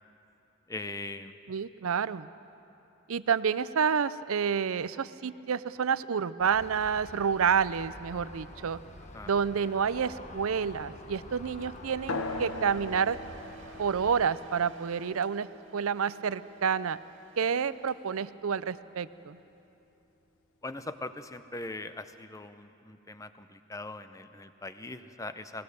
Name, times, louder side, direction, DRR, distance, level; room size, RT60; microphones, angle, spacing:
voice 1, 0.7-1.4 9.1-9.3 20.6-25.6, left 2 dB, 15° left, 11 dB, 0.6 m, -41 dB
voice 2, 1.5-2.3 3.1-8.8 9.3-13.2 13.8-17.0 17.4-19.4, right 6 dB, 75° right, 16 dB, 0.5 m, -29 dB
Aircraft, 6.4-14.3, left 1 dB, 30° left, 1.2 m, -48 dB
Domestic sounds home sounds, 11.6-18.3, right 3 dB, 55° right, 1.8 m, -55 dB
sound 1, 12.1-17.1, left 2 dB, 80° left, 1.2 m, -40 dB
21.0 x 19.0 x 6.8 m, 3.0 s
head